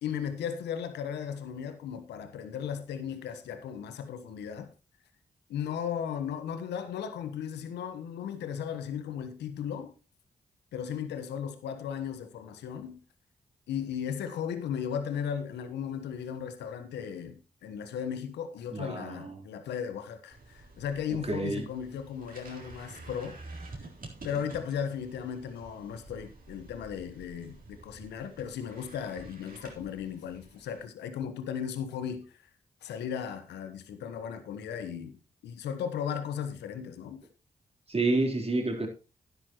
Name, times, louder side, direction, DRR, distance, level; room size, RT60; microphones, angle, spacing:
voice 1, 0.0-4.7 5.5-9.9 10.7-13.0 13.7-23.4 24.2-32.4 32.8-37.2, left 8 dB, 85° left, 1.2 m, -36 dB
voice 2, 18.7-19.3 21.3-21.7 37.9-38.9, right 2 dB, 35° right, 3.7 m, -29 dB
sound 1, 20.3-30.8, right 2 dB, 55° right, 3.9 m, -49 dB
12.0 x 10.5 x 3.0 m
supercardioid pair, 40°, 17 cm